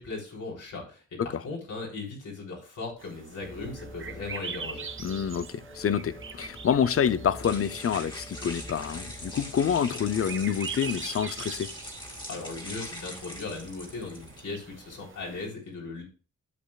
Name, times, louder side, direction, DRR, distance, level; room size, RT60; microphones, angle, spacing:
voice 1, 0.0-4.9 12.0-16.0, left 3 dB, 75° left, 3.8 m, -38 dB
sound 1, 3.0-15.5, right 6 dB, 40° right, 0.9 m, -43 dB
sound 2, 3.4-10.4, equal, 5° right, 1.9 m, -46 dB
voice 2, 5.0-11.7, left 8 dB, 45° left, 0.6 m, -27 dB
sound 3, 5.8-14.4, left 1 dB, 15° left, 2.1 m, -43 dB
12.0 x 7.8 x 2.3 m
wide cardioid pair, 170°, 31 cm